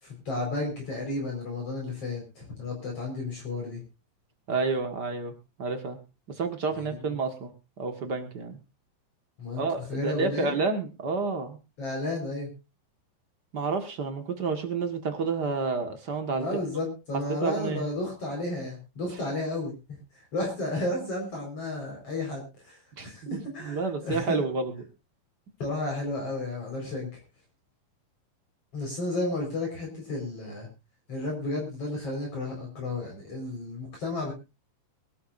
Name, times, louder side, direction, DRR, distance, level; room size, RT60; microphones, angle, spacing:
voice 1, 0.0-3.8 6.7-7.0 9.4-9.6 9.9-10.5 11.8-12.5 16.4-19.8 20.1-24.5 25.6-27.2 28.7-30.7 31.1-34.3, left 2 dB, 45° left, 0 dB, 5.5 m, -32 dB
voice 2, 4.5-5.3 5.6-6.0 6.3-7.5 7.8-8.6 9.6-11.6 13.5-16.5 17.1-17.9 23.0-24.7, right 4 dB, 45° right, 7 dB, 1.5 m, -30 dB
23.0 x 12.5 x 2.6 m, 0.28 s
omnidirectional pair, 3.9 m